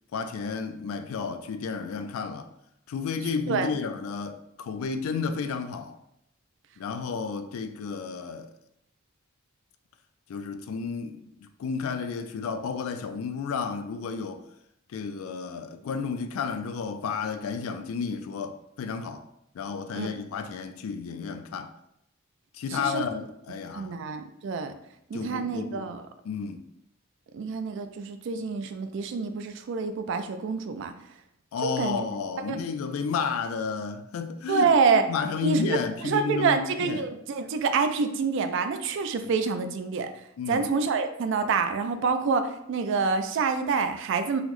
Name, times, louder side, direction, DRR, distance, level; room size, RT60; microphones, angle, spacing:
voice 1, 0.1-2.5 2.9-6.0 6.8-8.5 10.3-14.4 14.9-19.2 19.5-21.7 22.5-24.0 25.1-25.9 26.2-26.6 31.5-34.7 35.1-37.1 40.4-40.7, left 5 dB, 80° left, 0.3 m, -32 dB
voice 2, 22.7-23.0 23.7-24.7 25.1-26.0 27.3-30.9 31.6-32.0 32.5-32.6 34.5-35.0 35.4-40.1 40.5-44.4, right 5 dB, 60° right, 0.3 m, -27 dB
3.9 x 2.0 x 3.0 m
head